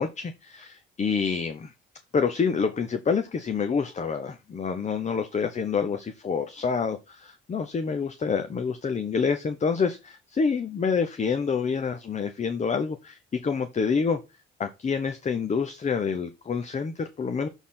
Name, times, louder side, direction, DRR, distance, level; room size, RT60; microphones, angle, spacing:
voice 1, 0.0-1.7 2.1-14.2 14.6-17.5, left 5 dB, 35° left, 0.9 m, -27 dB
7.1 x 4.2 x 5.7 m
cardioid pair, 90°, 20 cm